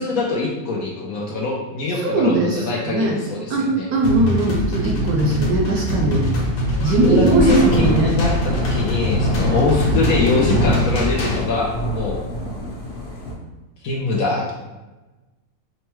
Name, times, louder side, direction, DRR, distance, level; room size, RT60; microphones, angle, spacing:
voice 1, 0.0-3.9 5.9-6.0 6.7-12.2 13.8-14.5, left 3 dB, 70° left, -2 dB, 0.9 m, -23 dB
voice 2, 2.0-3.2 3.5-6.2 6.8-8.2 9.4-9.6, right 2 dB, 70° right, 0 dB, 0.9 m, -19 dB
sound 1, 4.0-11.4, equal, 90° left, 1.6 m, -23 dB
Thunder / Rain, 7.3-13.3, left 1 dB, 50° left, 1.4 m, -24 dB
5.3 x 2.1 x 3.0 m, 1.1 s
omnidirectional pair, 1.8 m